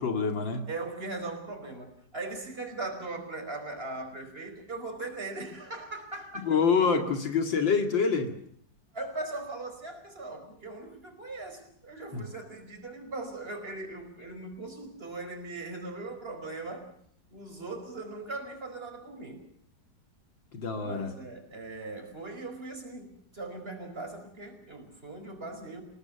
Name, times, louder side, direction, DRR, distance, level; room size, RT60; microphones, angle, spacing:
voice 1, 0.0-0.6 6.4-8.3 12.1-12.3 20.5-21.1, left 5 dB, 80° left, 5 dB, 3.1 m, -26 dB
voice 2, 0.7-6.5 8.9-16.9 17.3-19.4 20.8-25.8, right 2 dB, 30° right, 6 dB, 5.3 m, -39 dB
28.5 x 18.5 x 7.0 m, 0.66 s
omnidirectional pair, 2.0 m